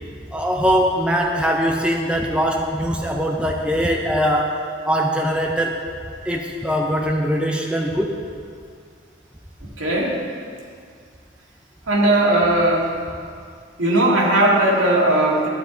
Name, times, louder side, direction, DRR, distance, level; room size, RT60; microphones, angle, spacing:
voice 1, 0.3-4.6 4.8-5.8 6.3-8.1, equal, 5° right, 0 dB, 0.7 m, -21 dB
voice 2, 9.8-10.1 11.9-12.9 13.8-15.5, right 1 dB, 85° right, -3 dB, 2.2 m, -17 dB
12.0 x 9.3 x 3.9 m, 2.2 s
head